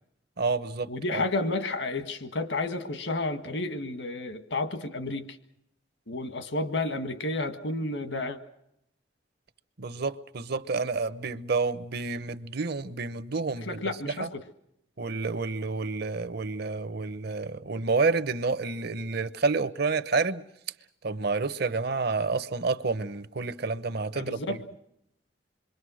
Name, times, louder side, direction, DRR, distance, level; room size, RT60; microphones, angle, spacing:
voice 1, 0.4-1.2 9.8-14.3 15.0-20.4 21.0-24.6, right 4 dB, 65° right, 0.9 m, -29 dB
voice 2, 0.9-5.3 6.1-8.4 13.7-14.4 24.1-24.6, left 2 dB, 85° left, 1.7 m, -31 dB
27.0 x 23.0 x 6.3 m
head